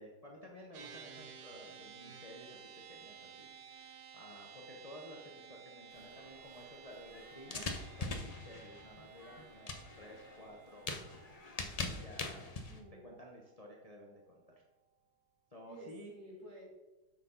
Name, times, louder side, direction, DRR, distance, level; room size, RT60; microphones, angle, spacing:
voice 1, 0.0-2.6 2.9-10.9 11.8-12.5 13.0-14.2 14.6-14.7 15.5-16.1, equal, 30° left, -1 dB, 0.8 m, -53 dB
sound 1, 0.7-14.3, right 7 dB, 75° right, 1.4 m, -55 dB
sound 2, 5.9-12.8, left 3 dB, 60° left, 0.4 m, -44 dB
voice 2, 12.7-13.1 15.6-16.6, right 1 dB, 55° right, -5 dB, 3.2 m, -52 dB
6.5 x 6.1 x 5.5 m, 1.1 s
omnidirectional pair, 2.0 m